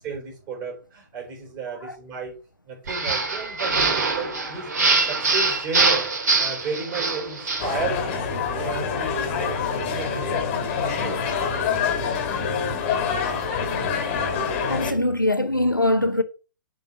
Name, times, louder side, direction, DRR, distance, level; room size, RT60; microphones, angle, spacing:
voice 1, 0.0-2.4 2.7-6.1 6.4-8.3 8.5-11.2, right 4 dB, 30° right, 4.0 m, -34 dB
sound 1, 2.9-7.7, right 3 dB, 55° right, 2.5 m, -23 dB
sound 2, 7.6-14.9, left 6 dB, 35° left, 1.5 m, -26 dB
voice 2, 14.7-16.2, left 1 dB, 90° left, 0.8 m, -22 dB
7.1 x 3.6 x 5.5 m
figure-of-eight pair, 120°, 11 cm